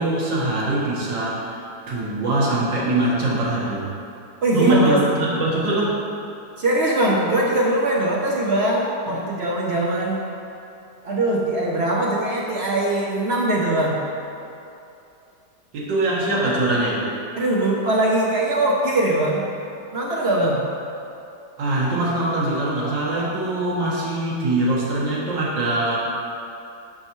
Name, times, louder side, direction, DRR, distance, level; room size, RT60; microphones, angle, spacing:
voice 1, 0.0-3.9 4.5-6.0 9.1-9.2 15.7-17.1 21.6-26.0, right 2 dB, 80° right, -7 dB, 2.1 m, -22 dB
voice 2, 4.4-5.0 6.6-10.3 11.0-14.1 17.4-19.4 19.9-20.7, right 1 dB, 60° right, -3 dB, 0.6 m, -21 dB
9.7 x 5.4 x 3.0 m, 2.7 s
omnidirectional pair, 1.9 m